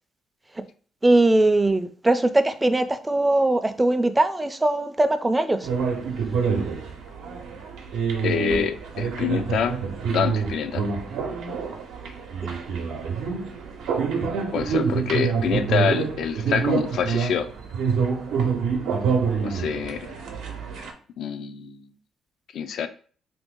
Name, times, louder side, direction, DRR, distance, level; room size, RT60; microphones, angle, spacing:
voice 1, 1.0-5.7, right 2 dB, 15° right, 0.4 m, -20 dB
sound 1, 5.6-20.9, right 5 dB, 90° right, 0.6 m, -26 dB
voice 2, 8.2-9.8 10.1-10.8 14.5-17.5 19.4-20.1 21.2-21.9 22.5-22.9, left 7 dB, 70° left, 0.4 m, -26 dB
2.7 x 2.6 x 3.7 m
cardioid pair, 90°, 0 cm